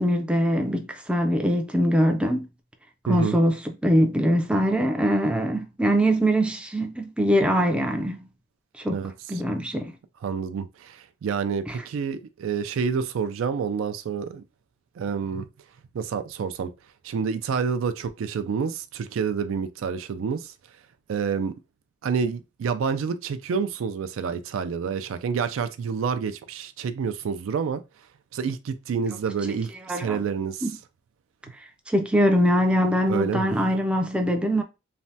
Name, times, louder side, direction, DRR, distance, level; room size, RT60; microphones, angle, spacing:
voice 1, 0.0-2.5 3.1-8.3 8.8-9.9 11.7-11.8 29.9-30.2 30.6-30.7 31.9-34.6, equal, 5° right, 0.3 m, -23 dB
voice 2, 3.1-3.4 8.9-9.1 10.2-14.4 15.0-15.5 15.9-16.7 17.0-20.5 21.1-21.5 22.0-27.8 28.3-30.7 33.1-33.5, right 6 dB, 80° right, 0.3 m, -28 dB
3.2 x 2.1 x 2.7 m
head